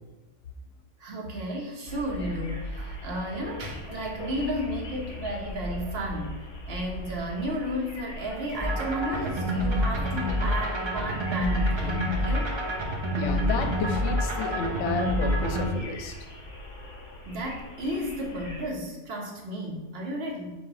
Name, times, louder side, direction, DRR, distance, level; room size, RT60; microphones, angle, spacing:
voice 1, 1.0-12.5 17.2-20.5, equal, 55° right, 0 dB, 1.0 m, -33 dB
sound 1, 1.9-18.6, left 1 dB, 50° left, 1.1 m, -41 dB
sound 2, 8.6-15.7, equal, 35° right, 0.5 m, -27 dB
voice 2, 13.1-16.1, left 4 dB, 75° left, 6 dB, 0.9 m, -31 dB
3.8 x 2.6 x 4.6 m, 1.1 s
omnidirectional pair, 1.3 m